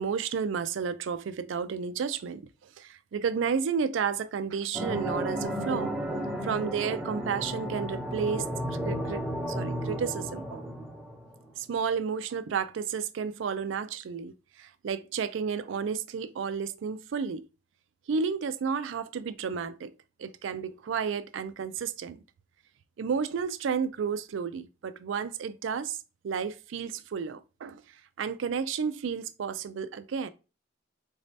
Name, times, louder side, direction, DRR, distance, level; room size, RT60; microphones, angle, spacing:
voice 1, 0.0-2.5 2.8-8.5 8.8-10.6 11.6-14.3 14.6-17.4 18.1-19.9 20.2-22.2 23.0-26.0 26.2-27.8 28.2-30.3, right 6 dB, 75° right, 0.4 m, -32 dB
sound 1, 4.7-11.5, equal, 5° right, 0.6 m, -33 dB
4.0 x 2.7 x 3.2 m
head